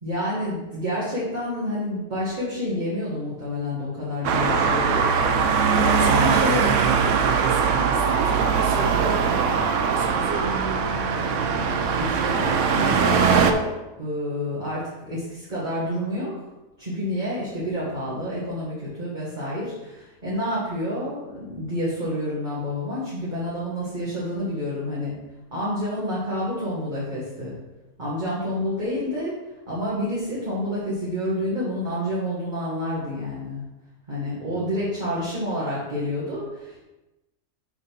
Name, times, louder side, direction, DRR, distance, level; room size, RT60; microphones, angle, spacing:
voice 1, 0.0-5.1 5.7-6.6 11.9-13.7 14.0-16.3 16.8-25.2 25.5-27.5 28.0-29.4 29.7-33.6 34.1-36.8, left 1 dB, 30° right, -9 dB, 2.0 m, -28 dB
Traffic noise roadway noise, 4.2-13.5, right 6 dB, 60° right, 0.8 m, -21 dB
voice 2, 5.7-9.4 9.9-11.0 34.4-35.1, right 4 dB, 85° right, 2 dB, 1.5 m, -32 dB
7.0 x 4.1 x 5.9 m, 1.0 s
omnidirectional pair, 1.7 m